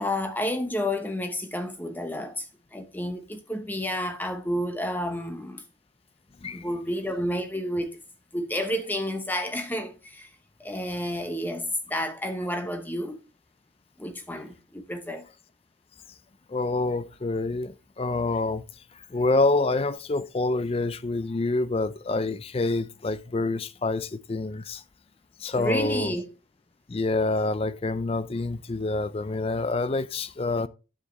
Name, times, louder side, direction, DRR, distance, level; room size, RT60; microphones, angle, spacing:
voice 1, 0.0-2.5 2.7-5.6 6.5-7.9 8.3-10.3 10.6-13.2 14.0-15.3 25.5-26.3, equal, 10° left, 1.0 m, -30 dB
voice 2, 16.5-18.6 18.9-24.8 25.4-26.1 26.9-30.7, left 3 dB, 30° left, 0.4 m, -27 dB
9.8 x 7.3 x 3.1 m
head